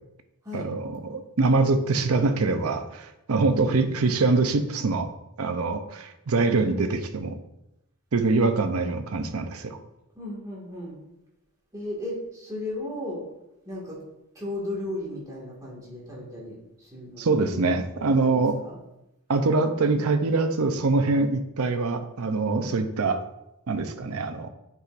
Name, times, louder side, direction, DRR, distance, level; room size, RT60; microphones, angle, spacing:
voice 1, 0.5-5.1 5.4-7.4 8.1-9.8 17.2-18.6 19.3-23.2 23.7-24.5, right 3 dB, 80° right, 8 dB, 0.6 m, -24 dB
voice 2, 10.1-11.0 11.7-13.2 13.7-14.0 14.3-17.8 18.1-18.8, left 1 dB, 15° right, -5 dB, 1.9 m, -35 dB
9.4 x 4.9 x 2.5 m, 0.90 s
head